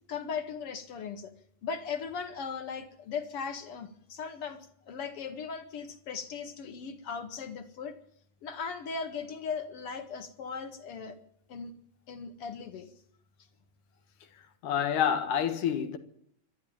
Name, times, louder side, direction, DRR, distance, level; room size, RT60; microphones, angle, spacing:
voice 1, 0.1-1.3 1.6-8.0 8.4-11.2 11.5-11.7 12.1-12.9, left 5 dB, 50° left, 2.4 m, -38 dB
voice 2, 14.6-16.0, left 8 dB, 80° left, 3.0 m, -28 dB
26.5 x 12.5 x 8.9 m
omnidirectional pair, 3.6 m